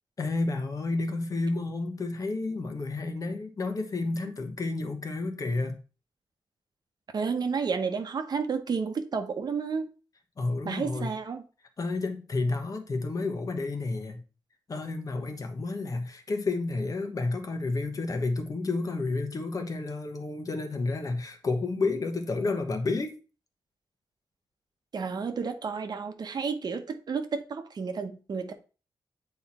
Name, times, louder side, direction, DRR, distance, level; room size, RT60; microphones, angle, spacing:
voice 1, 0.2-5.8 10.4-11.1 11.8-14.2 14.7-23.2, left 3 dB, 45° left, 1.2 m, -30 dB
voice 2, 7.1-9.9 10.6-11.4 24.9-28.5, right 5 dB, 55° right, 1.0 m, -31 dB
8.1 x 4.4 x 4.2 m
wide cardioid pair, 120°, 9 cm